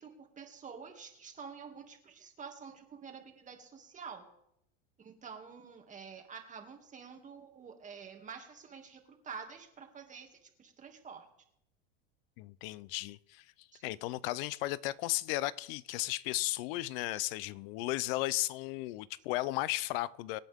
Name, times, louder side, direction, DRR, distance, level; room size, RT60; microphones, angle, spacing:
voice 1, 0.0-4.2 5.0-11.2 13.7-13.8, right 6 dB, 25° right, 2.4 m, -48 dB
voice 2, 12.4-20.4, left 18 dB, 70° left, 0.6 m, -35 dB
24.5 x 9.3 x 3.6 m
supercardioid pair, 125°, 30 cm